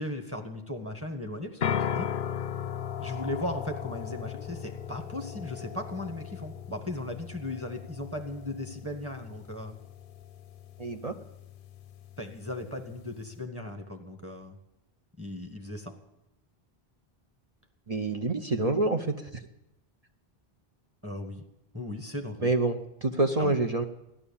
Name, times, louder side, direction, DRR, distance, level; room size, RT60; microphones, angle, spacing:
voice 1, 0.0-2.1 3.0-9.7 12.2-14.6 15.2-15.9 21.0-21.4 21.7-22.5 23.4-23.6, left 1 dB, 15° right, 4 dB, 1.6 m, -37 dB
sound 1, 1.6-13.4, left 8 dB, 60° left, 0.8 m, -37 dB
voice 2, 10.8-11.2 17.9-19.2 22.4-23.9, right 2 dB, 40° right, 5 dB, 0.9 m, -27 dB
15.5 x 11.5 x 7.1 m, 0.88 s
omnidirectional pair, 1.1 m